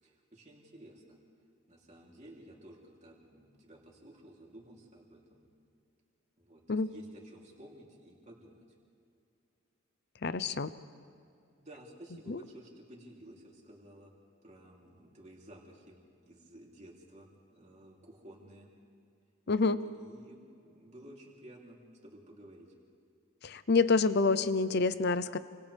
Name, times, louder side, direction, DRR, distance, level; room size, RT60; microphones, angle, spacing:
voice 1, 0.0-1.2 1.7-5.5 6.4-8.6 11.6-14.1 14.4-18.7 19.5-22.7, right 1 dB, 35° right, -2 dB, 3.3 m, -54 dB
voice 2, 10.2-10.7 12.3-12.4 19.5-19.8 23.4-25.4, left 4 dB, 50° left, 14 dB, 0.7 m, -27 dB
29.0 x 25.5 x 3.5 m, 2.4 s
head